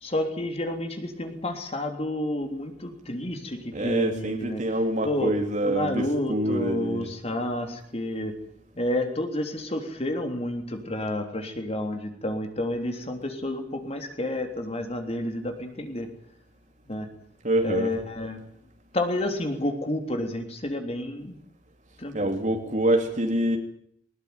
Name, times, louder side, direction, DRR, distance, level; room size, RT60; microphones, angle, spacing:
voice 1, 0.0-4.6 5.1-5.3 5.7-8.3 8.8-16.1 16.9-17.1 17.6-18.4 18.9-21.4 22.0-22.3, left 1 dB, 35° left, 5 dB, 3.4 m, -30 dB
voice 2, 3.7-7.1 17.4-17.9 22.1-23.6, right 1 dB, 45° right, 4 dB, 2.8 m, -26 dB
21.0 x 20.0 x 9.6 m, 0.67 s
head